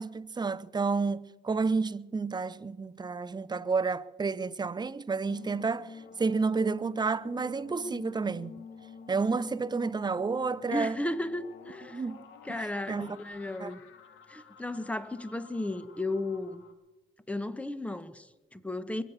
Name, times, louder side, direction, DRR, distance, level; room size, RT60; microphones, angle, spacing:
voice 1, 0.0-8.5 9.1-11.0 11.9-12.2 12.5-12.6 12.9-13.2 13.6-13.7, right 4 dB, 20° right, 0.6 m, -30 dB
sound 1, 5.3-16.7, left 5 dB, 85° left, 2.0 m, -50 dB
voice 2, 10.7-12.0 12.4-13.8 14.3-16.6 17.3-19.0, left 2 dB, 5° left, 1.1 m, -34 dB
23.0 x 8.2 x 7.2 m
cardioid pair, 90°, 20 cm